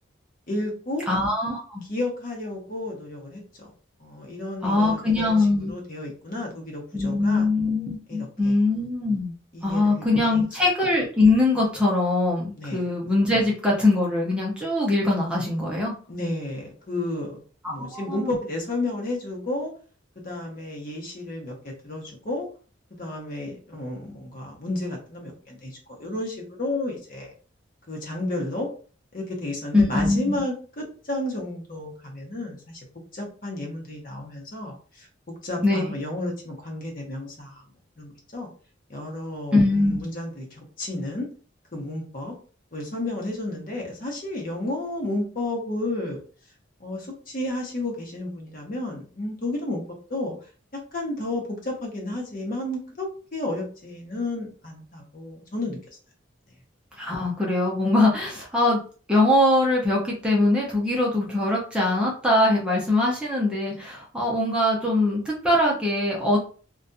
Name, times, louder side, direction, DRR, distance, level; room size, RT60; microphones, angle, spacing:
voice 1, 0.5-1.0 1.9-3.7 4.0-5.4 5.7-7.5 8.1-8.6 9.5-10.4 12.6-12.9 16.1-17.4 17.7-19.7 20.2-22.5 23.0-27.3 27.9-28.7 29.1-32.8 33.1-37.6 38.0-38.5 38.9-41.3 41.7-42.3 42.7-46.2 46.8-49.8 50.1-50.3 50.7-55.8, left 2 dB, 45° left, -1 dB, 0.8 m, -32 dB
voice 2, 1.1-1.8 4.6-5.7 6.9-9.4 9.6-15.9 17.6-18.4 29.7-30.4 35.6-35.9 39.5-40.0 57.0-58.8 59.1-66.4, left 2 dB, 5° right, -4 dB, 0.5 m, -22 dB
2.5 x 2.2 x 2.6 m, 0.39 s
head